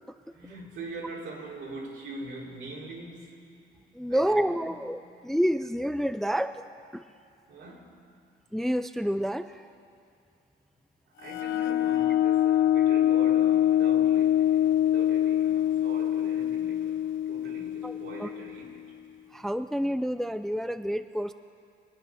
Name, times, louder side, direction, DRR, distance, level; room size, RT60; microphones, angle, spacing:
voice 1, 0.3-3.4 4.1-4.4 4.7-4.9 7.5-8.0 11.1-18.9, right 3 dB, 75° right, -3 dB, 3.6 m, -43 dB
voice 2, 3.9-6.6 6.9-7.1 8.5-9.7 17.8-18.3 19.3-21.3, equal, ahead, 10 dB, 0.4 m, -29 dB
sound 1, 11.2-18.7, left 11 dB, 80° left, 0.6 m, -24 dB
24.5 x 9.0 x 5.8 m, 2.6 s
cardioid pair, 90°, 20 cm